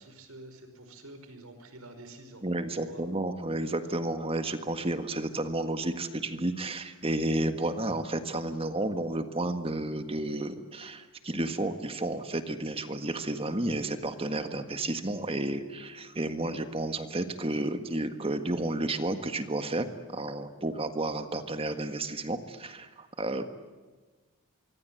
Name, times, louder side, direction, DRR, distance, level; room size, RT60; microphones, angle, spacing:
voice 1, 0.0-2.5 2.8-3.1, right 2 dB, 80° right, 8 dB, 5.3 m, -48 dB
voice 2, 2.4-23.4, right 2 dB, 25° right, 8 dB, 1.7 m, -32 dB
25.0 x 24.5 x 7.9 m, 1.4 s
head